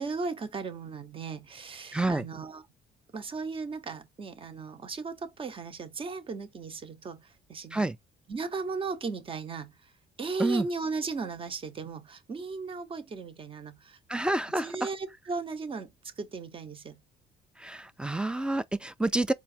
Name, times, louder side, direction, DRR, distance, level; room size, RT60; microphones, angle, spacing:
voice 1, 0.0-2.6 3.1-7.9 8.3-9.9 10.2-14.0 14.6-17.0, right 4 dB, 30° right, 0.9 m, -36 dB
voice 2, 1.9-2.3 7.7-8.0 10.4-10.7 14.1-14.9 17.6-19.3, right 2 dB, 5° right, 0.4 m, -28 dB
4.5 x 2.4 x 2.7 m
cardioid pair, 110°, 17 cm